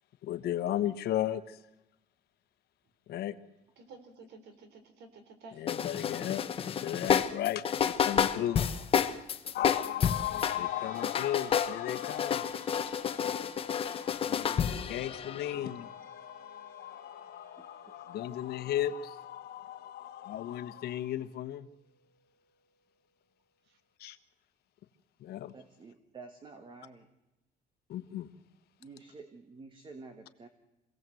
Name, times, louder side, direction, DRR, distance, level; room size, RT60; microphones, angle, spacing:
voice 1, 0.2-1.6 3.1-3.3 5.5-8.6 9.5-21.7 24.0-24.2 25.2-25.5 27.9-28.3, left 12 dB, 65° left, 10 dB, 1.3 m, -36 dB
voice 2, 3.8-5.6 8.4-9.2 9.4-9.6, right 4 dB, 75° right, 8 dB, 3.7 m, -53 dB
sound 1, 5.7-10.6 10.9-15.5, left 7 dB, 35° left, 1.0 m, -30 dB
sound 2, 10.4-22.7, right 2 dB, 55° right, 4.2 m, -56 dB
voice 3, 25.5-27.1 28.8-30.5, right 4 dB, 30° right, 8 dB, 1.6 m, -50 dB
26.0 x 17.5 x 7.8 m, 0.94 s
cardioid pair, 160°, 17 cm